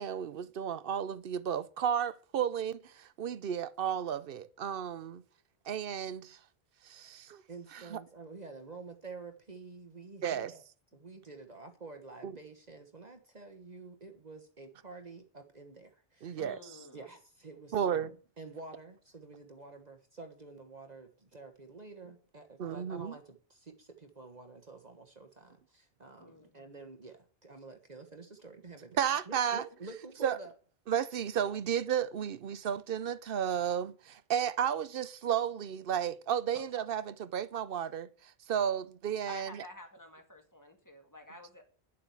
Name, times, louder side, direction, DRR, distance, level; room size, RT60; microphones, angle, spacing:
voice 1, 0.0-5.2 5.7-6.4 6.9-7.4 7.7-8.0 10.2-10.5 12.2-12.3 16.2-16.6 17.7-18.1 22.6-23.1 29.0-29.6 30.2-30.4 30.9-39.5, right 8 dB, 65° right, 0.8 m, -33 dB
voice 2, 7.5-10.6 10.9-16.4 16.9-29.0 29.3-30.5, right 3 dB, 40° right, 1.3 m, -49 dB
voice 3, 16.4-17.1 26.2-26.6 36.5-36.7 39.3-41.6, left 1 dB, 15° left, 2.2 m, -50 dB
10.5 x 7.4 x 7.0 m
omnidirectional pair, 1.0 m